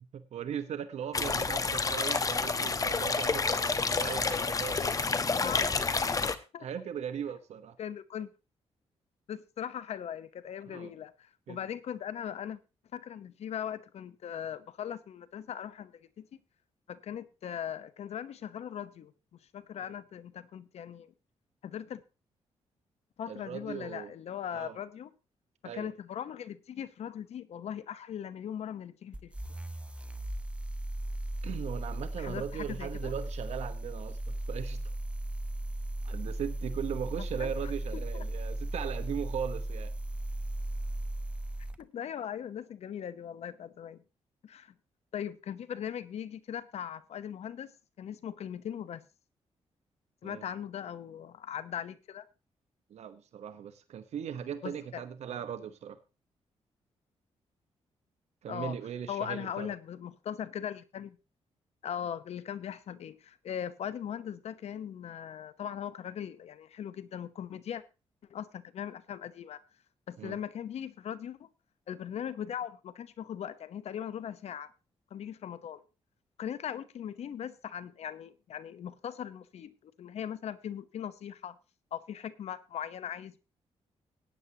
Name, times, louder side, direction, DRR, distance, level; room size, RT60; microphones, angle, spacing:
voice 1, 0.1-4.9 6.6-7.8 10.7-10.9 11.5-11.6 19.9-20.0 23.3-24.1 24.5-24.8 25.6-25.9 31.4-34.8 36.0-39.9 50.2-50.4 52.9-56.0 58.4-59.7 70.2-70.4, right 8 dB, 75° right, 10 dB, 1.1 m, -38 dB
sound 1, 1.1-6.3, left 4 dB, 30° left, 1.0 m, -29 dB
voice 2, 5.4-6.1 6.5-6.7 7.8-8.3 9.3-12.6 12.9-16.3 16.9-19.1 19.5-21.1 21.6-22.0 23.2-25.1 25.6-29.3 32.2-33.1 37.4-37.5 37.9-38.2 41.8-44.0 44.4-44.7 45.1-47.7 48.0-49.0 50.2-52.3 54.6-55.0 58.5-58.7 59.1-61.2 61.8-67.8 68.3-69.6 70.1-71.5 71.9-74.7 75.1-75.9 76.4-81.6 81.9-83.4, left 9 dB, 70° left, 14 dB, 1.0 m, -39 dB
sound 2, 29.1-41.8, right 1 dB, 10° right, 1.0 m, -36 dB
17.0 x 9.6 x 2.9 m, 0.29 s
cardioid pair, 90°, 11 cm